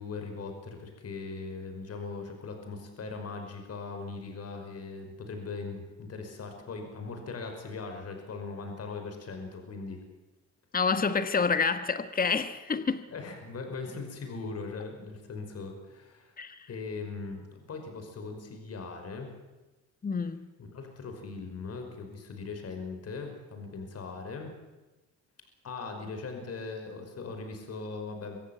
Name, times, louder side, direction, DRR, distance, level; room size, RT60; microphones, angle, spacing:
voice 1, 0.0-10.0 13.1-16.3 16.7-19.3 20.6-24.5 25.6-28.4, left 4 dB, 55° left, 5 dB, 5.4 m, -40 dB
voice 2, 10.7-13.1 16.4-16.7 20.0-20.5, left 5 dB, 30° left, 11 dB, 1.4 m, -28 dB
25.0 x 15.0 x 9.2 m, 1.1 s
cardioid pair, 90°, 30 cm